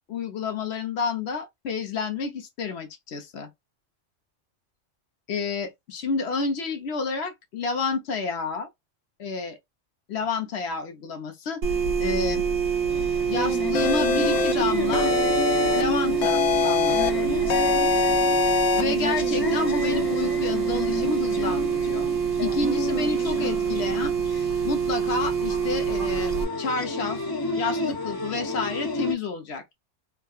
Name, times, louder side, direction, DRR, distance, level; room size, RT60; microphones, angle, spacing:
voice 1, 0.1-3.5 5.3-8.7 9.2-9.6 10.1-11.6 12.0-12.4 13.3-15.1 15.7-17.3 18.8-22.1 22.4-24.1 24.6-26.3 26.6-27.2 27.5-29.7, left 4 dB, 60° left, 1.0 m, -30 dB
sound 1, 11.6-26.4, right 7 dB, 85° right, 1.1 m, -26 dB
sound 2, 12.9-29.1, left 3 dB, 35° left, 0.4 m, -32 dB
sound 3, 13.7-14.5 14.9-15.8 16.2-17.1 17.5-18.8, left 7 dB, 80° left, 1.0 m, -23 dB
3.6 x 2.2 x 2.3 m
omnidirectional pair, 1.3 m